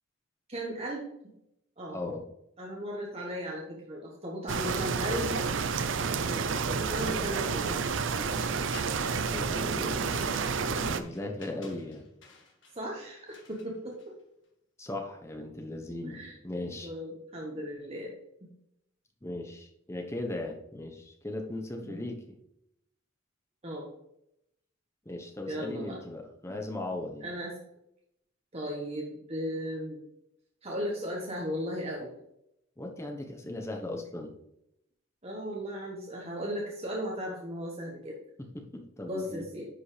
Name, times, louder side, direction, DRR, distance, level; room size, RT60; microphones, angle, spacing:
voice 1, 0.5-1.1 1.8-2.0 2.6-5.3 6.3-7.8 12.7-14.0 16.0-16.3 16.7-18.1 18.4-18.5 21.8-22.0 23.6-23.9 25.5-26.0 27.2-27.5 28.5-30.0 30.6-32.1 35.2-38.2 39.0-39.6, equal, 30° right, -2 dB, 1.2 m, -36 dB
voice 2, 1.9-2.2 9.3-12.1 14.8-16.9 19.2-22.4 25.0-27.3 32.8-34.3 38.5-39.4, left 2 dB, 15° left, 3 dB, 0.9 m, -38 dB
sound 1, 4.5-11.0, right 5 dB, 70° right, 0.5 m, -30 dB
sound 2, 8.7-9.2 9.9-14.5, left 4 dB, 65° left, 1.7 m, -53 dB
10.0 x 5.3 x 3.3 m, 0.80 s
head